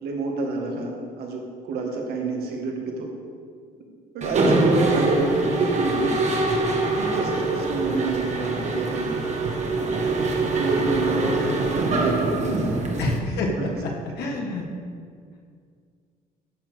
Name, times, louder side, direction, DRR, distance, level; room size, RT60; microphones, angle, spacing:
voice 1, 0.0-3.1 4.1-6.1 6.9-9.2 10.6-12.8 13.5-13.7, right 3 dB, 70° right, 1 dB, 2.0 m, -27 dB
Mechanisms, 4.2-13.2, right 3 dB, 40° right, 1.6 m, -24 dB
voice 2, 11.2-11.6 13.0-13.7 14.2-14.7, left 2 dB, 75° left, 0 dB, 1.6 m, -27 dB
11.5 x 4.4 x 8.0 m, 2.1 s
cardioid pair, 110°, 17 cm